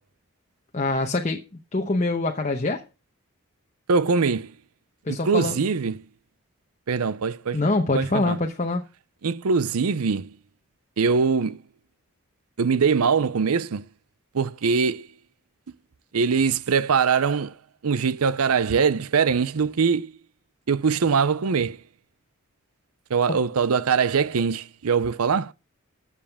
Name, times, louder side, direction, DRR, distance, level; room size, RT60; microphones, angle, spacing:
voice 1, 0.7-1.4 1.7-2.8 5.0-5.6 7.5-8.8, left 2 dB, 30° left, 0.9 m, -24 dB
voice 2, 3.9-4.5 5.1-6.0 6.9-7.6 7.9-8.4 9.2-10.3 11.0-11.6 12.6-13.8 14.3-15.1 16.1-17.5 17.8-20.1 20.7-21.8 23.1-25.5, right 5 dB, 85° right, 0.6 m, -22 dB
14.0 x 7.5 x 3.5 m
head